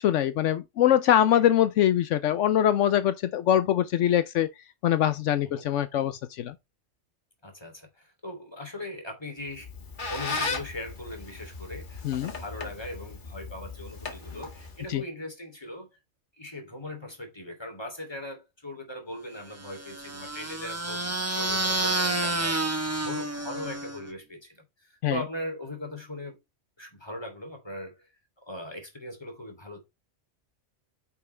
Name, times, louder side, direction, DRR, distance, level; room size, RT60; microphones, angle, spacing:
voice 1, 0.0-4.5 4.8-6.5 12.0-12.3 14.9-15.0 25.0-25.2, left 11 dB, 80° left, 1.0 m, -23 dB
voice 2, 7.4-9.7 10.1-15.9 16.4-26.4 26.8-28.1 28.5-29.8, left 1 dB, 20° left, 3.1 m, -39 dB
Squeak, 9.5-15.0, left 3 dB, 40° left, 1.7 m, -37 dB
sound 1, 19.6-24.1, right 2 dB, 15° right, 1.0 m, -29 dB
9.1 x 6.0 x 3.3 m
omnidirectional pair, 1.3 m